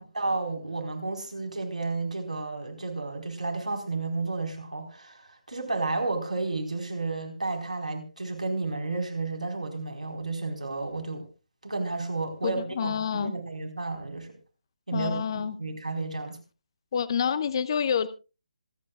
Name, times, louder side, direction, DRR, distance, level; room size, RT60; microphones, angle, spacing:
voice 1, 0.1-11.2 11.6-14.3 14.9-16.4, right 3 dB, 80° right, 4.5 m, -32 dB
voice 2, 12.4-13.3 14.9-15.6 16.9-18.1, left 7 dB, 40° left, 0.8 m, -28 dB
26.5 x 9.0 x 2.4 m
figure-of-eight pair, 150°, 4 cm